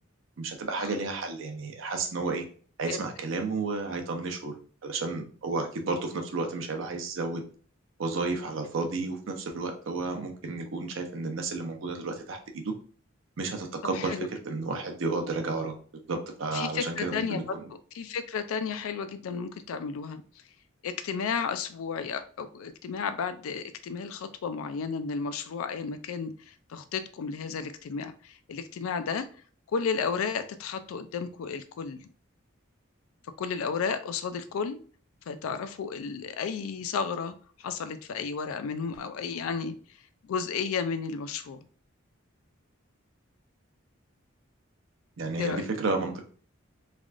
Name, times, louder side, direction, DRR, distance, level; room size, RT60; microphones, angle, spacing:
voice 1, 0.4-2.5 2.8-4.6 4.8-7.4 8.0-12.7 13.4-17.7 45.2-46.2, right 3 dB, 70° right, 4 dB, 0.5 m, -32 dB
voice 2, 13.9-14.3 16.5-17.4 17.9-20.2 20.8-29.3 29.7-32.0 33.4-34.8 35.3-39.8 40.2-41.6 45.4-45.7, left 5 dB, 85° left, 11 dB, 0.3 m, -33 dB
3.3 x 2.5 x 2.3 m, 0.42 s
head